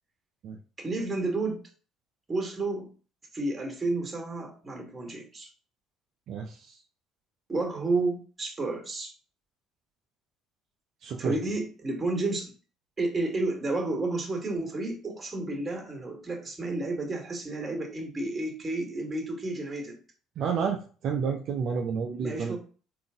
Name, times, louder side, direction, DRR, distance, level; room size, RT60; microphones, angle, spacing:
voice 1, 0.8-1.6 2.3-2.9 3.3-5.5 7.5-9.1 11.2-12.5 13.0-20.0 22.2-22.6, right 2 dB, 25° right, 2 dB, 1.6 m, -31 dB
voice 2, 6.3-6.7 11.0-11.3 20.4-22.6, right 6 dB, 60° right, 2 dB, 0.5 m, -30 dB
3.8 x 2.6 x 3.5 m, 0.38 s
hypercardioid pair, 65°, 0 cm